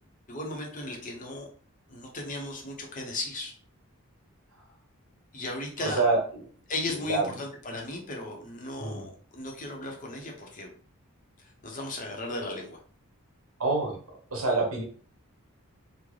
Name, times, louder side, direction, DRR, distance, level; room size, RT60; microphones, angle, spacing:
voice 1, 0.3-1.5 1.9-3.5 5.3-6.0 6.7-10.7 11.6-12.8, left 2 dB, 35° left, 1 dB, 0.7 m, -36 dB
voice 2, 5.8-6.4 6.9-7.3 8.8-9.1 13.6-14.8, right 3 dB, 70° right, 0 dB, 1.1 m, -27 dB
3.8 x 2.1 x 3.1 m, 0.43 s
head